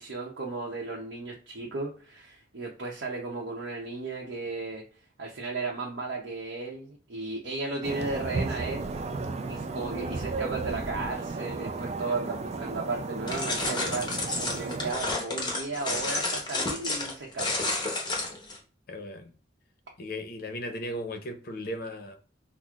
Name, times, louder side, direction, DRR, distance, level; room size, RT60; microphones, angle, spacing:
voice 1, 0.0-4.9 5.2-9.0 9.5-17.6, right 3 dB, 80° right, 0.7 m, -35 dB
sound 1, 7.8-14.9, right 3 dB, 35° right, 0.4 m, -34 dB
sound 2, 13.3-18.6, left 2 dB, 25° left, 0.9 m, -31 dB
voice 2, 18.9-19.3 20.0-22.2, left 1 dB, 55° left, 0.7 m, -36 dB
5.8 x 2.0 x 2.4 m
head